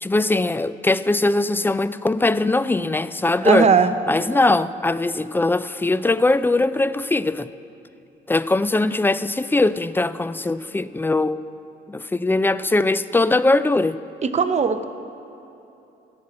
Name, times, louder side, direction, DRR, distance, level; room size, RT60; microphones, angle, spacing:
voice 1, 0.0-3.7 4.1-7.5 8.3-11.4 11.9-14.0, left 2 dB, 10° left, 15 dB, 0.3 m, -21 dB
voice 2, 3.4-3.9 14.2-14.8, right 5 dB, 35° right, 9 dB, 0.8 m, -18 dB
14.5 x 5.9 x 8.7 m, 2.9 s
cardioid pair, 90°, 20 cm